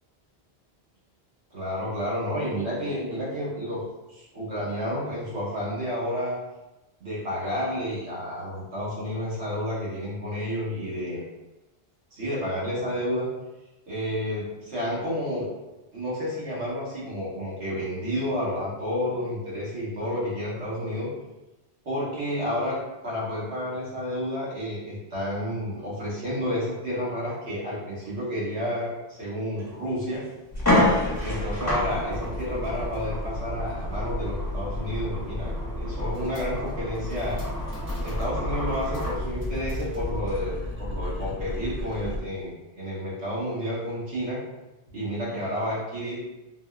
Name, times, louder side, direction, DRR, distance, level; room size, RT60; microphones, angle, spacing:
voice 1, 1.5-3.8 4.1-6.4 7.0-11.2 12.1-13.3 13.9-15.5 15.9-21.1 21.8-22.8 23.0-30.2 31.2-37.4 38.0-44.4 44.9-46.4, equal, 90° right, -7 dB, 1.3 m, -30 dB
sound 1, 29.6-29.7 30.1-30.2 30.5-39.2, left 1 dB, 15° left, 1.1 m, -30 dB
sound 2, 30.5-42.2, left 1 dB, 15° right, 0.4 m, -33 dB
3.9 x 2.1 x 2.3 m, 1.0 s
omnidirectional pair, 1.1 m